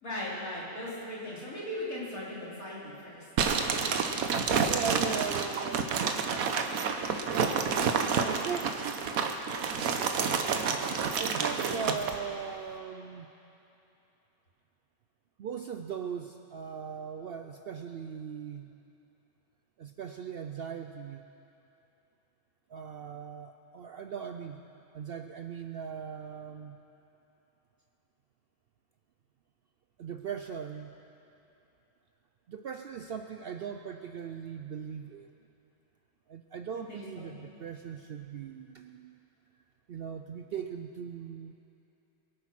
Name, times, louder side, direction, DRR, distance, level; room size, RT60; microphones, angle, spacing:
voice 1, 0.0-3.2 36.9-37.3, left 1 dB, 80° left, -7 dB, 3.8 m, -38 dB
sound 1, 3.4-12.2, right 6 dB, 90° right, 1.3 m, -29 dB
voice 2, 4.7-6.2 8.2-9.0 11.2-13.3 15.4-18.7 19.8-21.2 22.7-24.6 24.9-26.8 30.0-30.9 32.5-35.3 36.3-39.2 39.9-41.5, right 7 dB, 65° right, 6 dB, 0.6 m, -39 dB
23.0 x 8.8 x 6.0 m, 2.9 s
omnidirectional pair, 1.4 m